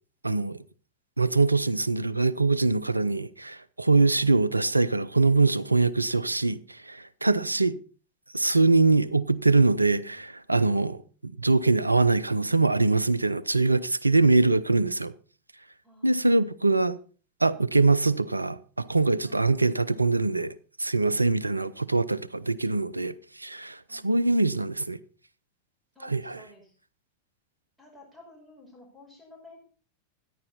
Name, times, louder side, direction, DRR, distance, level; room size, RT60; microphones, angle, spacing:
voice 1, 0.2-0.6 1.2-7.8 8.3-11.0 11.2-15.1 16.0-17.0 17.4-20.5 20.8-25.0 26.0-26.4, right 3 dB, 85° right, 0.6 m, -23 dB
voice 2, 7.3-7.8 10.7-11.0 15.8-16.4 19.2-19.5 21.4-21.7 23.9-24.2 26.0-26.8 27.8-29.6, equal, ahead, 5.2 m, -53 dB
14.0 x 10.5 x 4.2 m
figure-of-eight pair, 90°, 0 cm